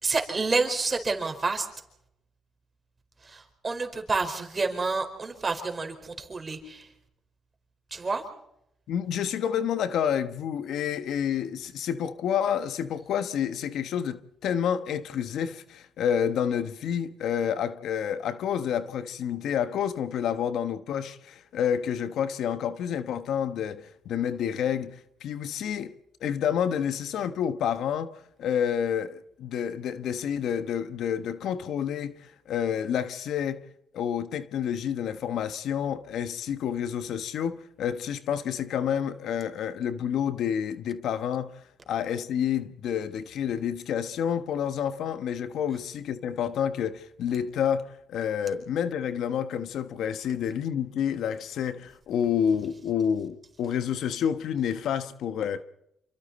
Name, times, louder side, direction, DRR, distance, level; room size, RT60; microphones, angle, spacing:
voice 1, 0.0-1.7 3.2-6.9 7.9-8.2, right 3 dB, 30° right, 4.8 m, -29 dB
voice 2, 8.9-26.0 26.2-33.6 33.9-41.6 41.9-55.6, left 8 dB, 75° left, 1.2 m, -29 dB
28.0 x 24.5 x 4.3 m
cardioid pair, 90°, 0 cm